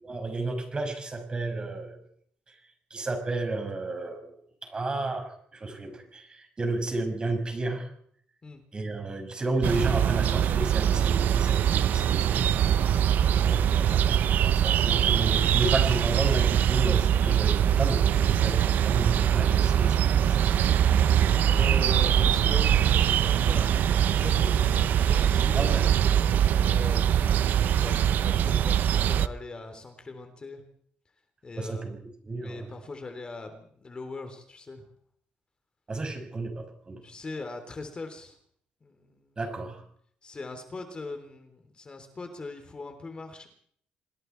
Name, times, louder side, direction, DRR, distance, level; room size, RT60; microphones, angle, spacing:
voice 1, 0.0-2.0 2.9-7.9 8.7-12.5 13.3-20.6 25.5-26.0 31.6-32.0 32.2-32.7 35.9-37.0 39.4-39.8, right 2 dB, 30° right, 5 dB, 6.3 m, -32 dB
sound 1, 9.6-29.3, right 9 dB, 70° right, 0.8 m, -23 dB
voice 2, 13.1-13.4 21.4-25.9 26.5-27.2 27.8-30.6 31.4-31.9 32.4-34.8 37.0-38.4 38.8-39.4 40.2-43.5, left 3 dB, 30° left, 7 dB, 3.5 m, -40 dB
27.0 x 20.5 x 4.7 m, 0.63 s
cardioid pair, 95°, 3 cm